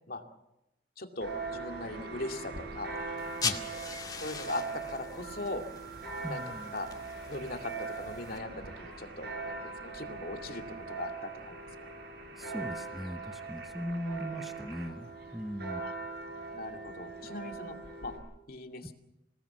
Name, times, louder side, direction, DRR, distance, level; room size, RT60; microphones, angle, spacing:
voice 1, 1.0-2.9 3.4-3.6 4.2-5.6 6.3-6.4 6.7-6.9 7.3-11.6 15.8-15.9 16.5-17.8 18.0-18.1 18.5-18.9, left 2 dB, 55° left, 4 dB, 2.4 m, -40 dB
Church bell, 1.2-18.2, right 4 dB, 60° right, 7.6 m, -41 dB
sound 1, 1.9-14.9, right 5 dB, 90° right, 3.8 m, -50 dB
sound 2, 3.2-8.4, left 5 dB, 25° left, 2.2 m, -40 dB
voice 2, 6.2-6.7 12.4-15.8, equal, ahead, 6 dB, 1.0 m, -39 dB
28.0 x 18.5 x 7.3 m, 0.86 s
head